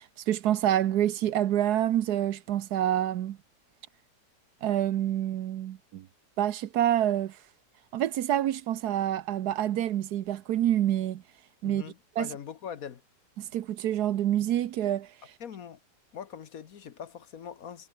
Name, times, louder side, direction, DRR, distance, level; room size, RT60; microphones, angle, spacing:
voice 1, 0.0-3.4 4.6-6.1 6.4-7.4 7.9-11.2 11.6-11.8 12.2-12.3 13.4-15.1, right 11 dB, 70° right, 1.3 m, -27 dB
voice 2, 11.6-13.0 15.4-15.8 16.1-17.9, left 8 dB, 60° left, 1.4 m, -41 dB
omnidirectional pair, 1.8 m